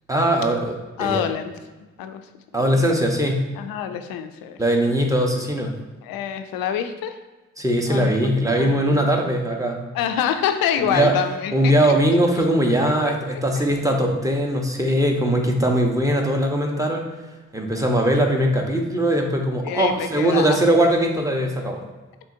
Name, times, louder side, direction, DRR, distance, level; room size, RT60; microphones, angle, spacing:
voice 1, 0.1-1.2 2.5-3.5 4.6-5.8 7.6-9.9 10.8-11.1 11.5-17.0 17.5-21.8, right 1 dB, 10° right, 1 dB, 1.1 m, -20 dB
voice 2, 1.0-2.2 2.6-3.0 3.6-4.6 6.0-7.2 7.9-8.1 8.4-9.2 9.9-12.2 13.3-13.6 19.6-20.9, left 9 dB, 80° left, 8 dB, 0.5 m, -27 dB
6.8 x 2.9 x 2.7 m, 1.2 s
hypercardioid pair, 40°, 34 cm